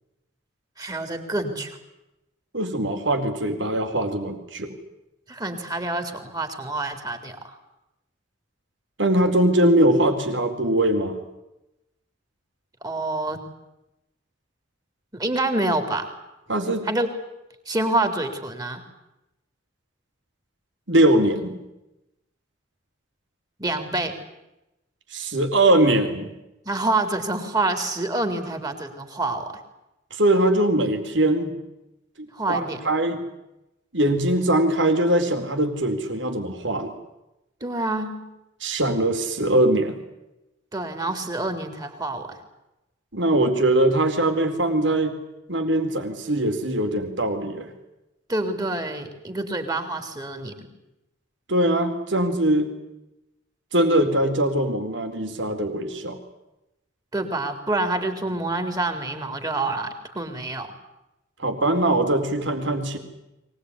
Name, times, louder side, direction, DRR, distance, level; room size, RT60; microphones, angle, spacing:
voice 1, 0.8-1.8 5.3-7.6 12.8-13.4 15.1-16.1 16.8-17.1 17.7-18.8 23.6-24.2 26.6-29.6 32.3-32.8 37.6-38.3 40.7-42.4 48.3-50.7 57.1-60.7, right 2 dB, 20° right, 6 dB, 3.9 m, -27 dB
voice 2, 2.5-4.7 9.0-11.2 16.5-16.9 20.9-21.6 25.1-26.3 30.1-31.5 32.2-33.2 33.9-36.9 38.6-40.0 43.1-45.1 45.5-47.7 51.5-52.7 53.7-56.2 61.4-63.0, right 1 dB, 70° right, 5 dB, 4.2 m, -21 dB
23.5 x 20.0 x 9.9 m, 0.92 s
head